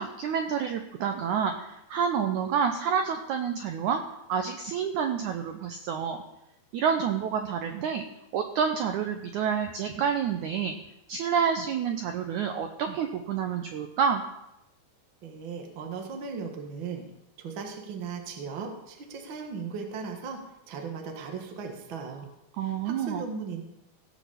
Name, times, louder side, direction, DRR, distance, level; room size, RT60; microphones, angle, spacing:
voice 1, 0.0-4.0 4.3-6.2 6.7-8.0 8.3-10.7 11.1-14.2 22.6-23.2, right 7 dB, 85° right, 5 dB, 1.7 m, -28 dB
voice 2, 15.2-17.0 17.4-22.3 22.6-23.6, right 5 dB, 45° right, 3 dB, 1.7 m, -37 dB
17.0 x 6.2 x 7.0 m, 0.85 s
omnidirectional pair, 4.6 m